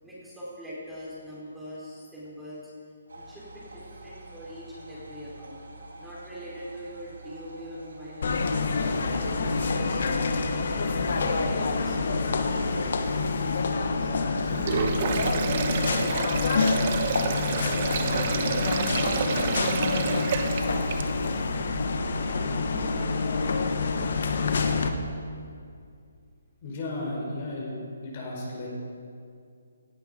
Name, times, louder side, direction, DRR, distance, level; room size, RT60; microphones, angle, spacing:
voice 1, 0.0-2.7 3.1-5.6 6.0-10.6 11.2-16.6 17.2-21.6 22.2-24.8, equal, 5° right, -9 dB, 4.5 m, -43 dB
sound 1, 3.1-9.4, right 2 dB, 85° right, 2.9 m, -47 dB
sound 2, 8.2-24.9, left 4 dB, 60° left, 1.4 m, -27 dB
Sink (filling or washing), 14.5-21.4, right 6 dB, 45° right, 1.2 m, -29 dB
voice 2, 26.6-27.8 28.0-28.7, left 2 dB, 40° left, -3 dB, 4.7 m, -34 dB
18.0 x 11.0 x 5.2 m, 2.3 s
hypercardioid pair, 150°, 0 cm